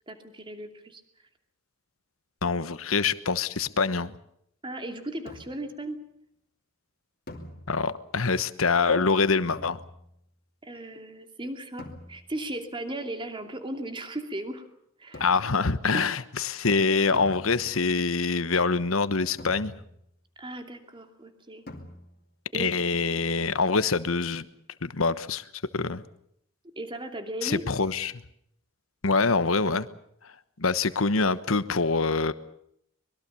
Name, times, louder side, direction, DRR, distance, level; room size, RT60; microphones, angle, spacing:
voice 1, 0.1-1.0 4.6-6.0 10.6-14.6 15.0-15.3 15.9-16.2 16.6-16.7 20.4-21.6 22.5-22.7 26.8-27.6, right 1 dB, 25° right, 6 dB, 2.8 m, -36 dB
voice 2, 2.4-4.1 7.7-9.8 15.2-19.7 22.5-24.4 24.8-25.4 25.7-26.0 27.4-28.1 29.0-29.9 30.6-32.3, left 4 dB, 80° left, 13 dB, 1.2 m, -25 dB
sound 1, 5.3-5.8 7.3-8.1 9.5-10.3 11.8-12.5 15.1-15.7 17.1-18.0 19.4-20.2 21.7-22.4, left 1 dB, 50° left, 2.8 m, -45 dB
24.5 x 22.0 x 7.0 m, 0.72 s
head